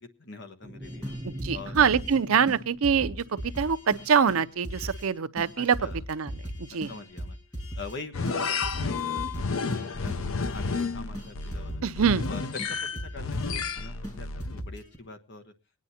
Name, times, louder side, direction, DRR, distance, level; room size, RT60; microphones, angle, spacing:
voice 1, 0.2-1.1 1.5-1.9 5.6-6.0 6.7-7.4 7.8-11.8 12.3-15.5, left 3 dB, 55° left, 1.2 m, -44 dB
sound 1, 0.6-3.9, equal, 25° right, 1.1 m, -42 dB
sound 2, 0.8-2.2 2.5-2.6 2.8-5.1 5.4-8.0 8.2-8.4 8.6-10.9 11.1-13.8 14.0-14.1 14.4-15.0, equal, 20° left, 5.9 m, -38 dB
voice 2, 1.4-5.8 6.1-6.3 6.6-6.9 11.8-12.3, right 6 dB, 80° right, 0.6 m, -24 dB
sound 3, 8.1-14.6, left 4 dB, 75° left, 0.7 m, -31 dB
24.0 x 9.5 x 2.8 m
head